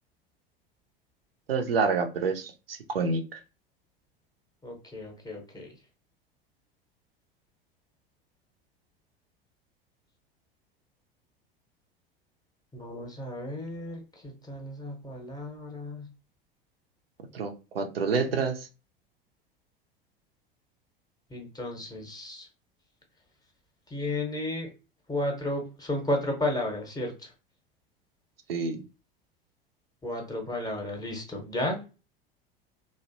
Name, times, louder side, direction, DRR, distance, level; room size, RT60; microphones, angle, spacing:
voice 1, 1.5-3.4 17.3-18.7 28.5-28.8, right 4 dB, 80° right, 6 dB, 0.5 m, -28 dB
voice 2, 4.6-5.7 12.7-16.1 21.3-22.5 23.9-24.7 25.1-27.3 30.0-31.9, left 1 dB, 15° left, 1 dB, 0.6 m, -33 dB
2.5 x 2.1 x 2.5 m, 0.31 s
figure-of-eight pair, 75°, 29 cm